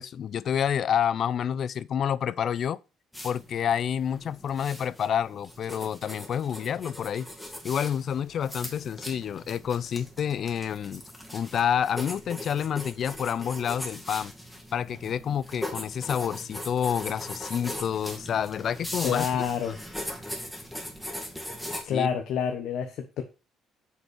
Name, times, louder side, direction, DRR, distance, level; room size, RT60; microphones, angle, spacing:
voice 1, 0.0-2.8 3.2-7.3 7.6-11.0 11.3-14.3 14.7-19.3 21.9-22.1, left 8 dB, 50° left, 0.4 m, -28 dB
sound 1, 3.1-21.8, left 1 dB, 5° left, 2.1 m, -40 dB
voice 2, 19.0-19.8 21.9-23.2, left 7 dB, 70° left, 1.2 m, -28 dB
7.5 x 5.4 x 6.3 m
cardioid pair, 125°, 0 cm